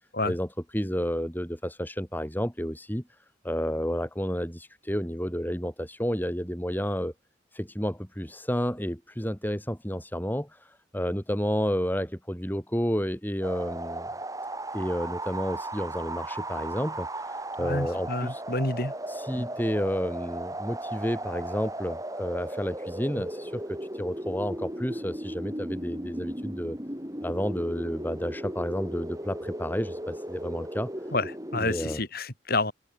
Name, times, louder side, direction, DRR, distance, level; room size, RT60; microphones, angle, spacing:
voice 1, 0.2-3.0 3.4-7.1 7.5-14.1 14.7-18.4 19.1-26.8 27.2-30.9 31.6-32.0, equal, 10° left, 6.1 m, -31 dB
sound 1, 13.4-32.0, right 1 dB, 15° right, 7.5 m, -36 dB
voice 2, 17.6-18.9 19.4-19.5 31.1-32.7, left 2 dB, 50° left, 4.4 m, -29 dB
open air
head